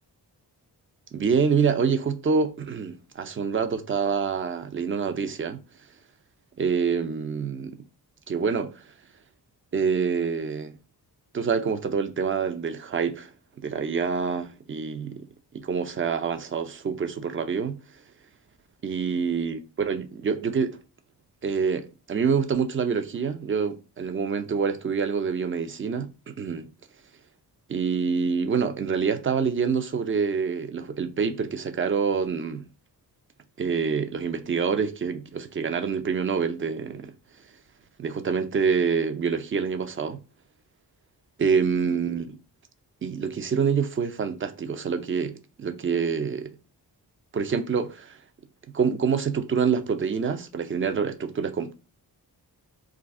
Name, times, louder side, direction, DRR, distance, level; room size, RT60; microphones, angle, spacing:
voice 1, 1.1-5.6 6.6-7.8 8.3-8.8 9.7-10.8 11.3-13.3 13.6-15.3 15.5-17.8 18.8-20.8 21.4-26.7 27.7-32.7 33.6-37.1 38.0-40.2 41.4-42.4 43.0-46.6 47.3-48.2 48.7-51.7, right 6 dB, 30° right, 0.5 m, -26 dB
2.5 x 2.4 x 3.5 m
wide cardioid pair, 100°, 40 cm